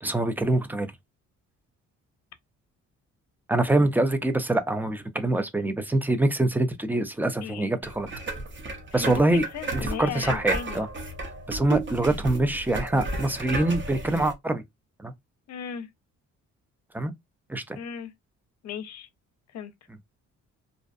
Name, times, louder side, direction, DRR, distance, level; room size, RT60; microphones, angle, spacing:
voice 1, 0.0-0.9 3.5-8.1 8.9-9.4 9.7-10.9 11.5-14.6 15.0-15.1 16.9-17.1 17.5-17.6, right 2 dB, 5° right, 0.4 m, -24 dB
sound 1, 7.8-14.3, right 2 dB, 40° right, 0.7 m, -33 dB
voice 2, 8.9-10.9 15.5-15.9 17.8-18.1 18.6-19.1 19.5-19.7, left 8 dB, 60° left, 0.6 m, -36 dB
2.5 x 2.1 x 2.5 m
cardioid pair, 90°, 30 cm